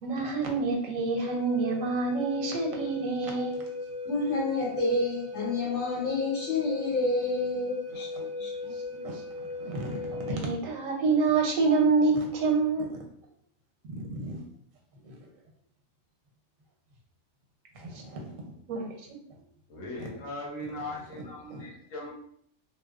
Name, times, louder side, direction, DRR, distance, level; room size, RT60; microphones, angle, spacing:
voice 1, 0.0-3.6 8.1-8.2 9.0-13.0 14.1-14.4 17.7-18.4 18.7-19.0 21.5-21.6, right 4 dB, 90° right, 1 dB, 1.0 m, -28 dB
Wind instrument woodwind instrument, 1.1-10.4, left 2 dB, 25° right, 0.3 m, -38 dB
voice 2, 4.0-8.7, left 2 dB, 65° left, -6 dB, 1.3 m, -29 dB
voice 3, 19.7-22.1, left 1 dB, 85° left, -3 dB, 1.2 m, -39 dB
2.8 x 2.0 x 2.3 m, 0.63 s
omnidirectional pair, 1.3 m